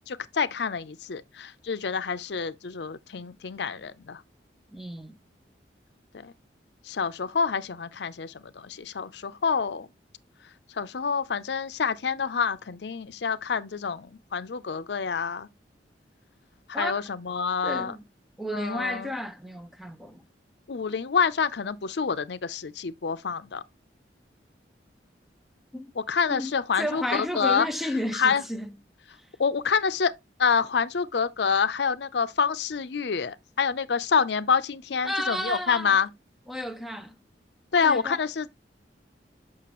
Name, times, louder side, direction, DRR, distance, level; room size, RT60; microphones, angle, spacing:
voice 1, 0.1-4.2 6.1-6.3 6.9-9.9 10.8-15.5 16.7-17.9 18.5-19.1 20.7-23.6 26.0-27.7 28.1-28.4 29.4-30.1 30.4-36.1 37.7-38.5, left 6 dB, 75° left, 0.6 m, -27 dB
voice 2, 4.7-5.2 16.7-17.0 17.6-18.0 18.4-20.2 25.7-25.9 26.3-28.7 35.0-36.0 36.5-37.1 37.7-38.2, left 1 dB, ahead, 0.5 m, -32 dB
7.6 x 6.0 x 3.0 m
head